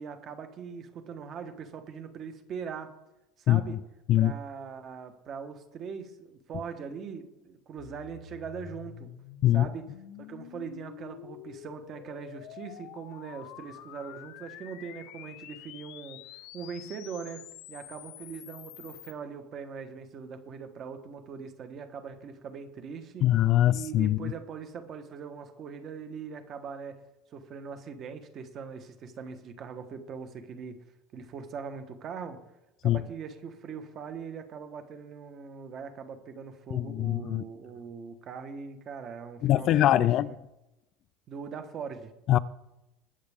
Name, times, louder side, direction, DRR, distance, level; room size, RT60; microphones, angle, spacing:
voice 1, 0.0-2.9 3.4-3.8 4.1-9.1 9.5-9.9 10.2-23.3 23.6-27.0 27.3-30.8 31.1-32.4 32.8-40.4 41.3-42.1, right 6 dB, 30° right, 1.3 m, -41 dB
sound 1, 7.8-19.1, left 13 dB, 60° left, 0.8 m, -48 dB
voice 2, 23.2-24.3 32.8-33.0 36.7-37.4 39.4-40.3 42.3-42.4, left 13 dB, 40° left, 0.3 m, -23 dB
22.0 x 8.2 x 3.6 m
cardioid pair, 165°, 0 cm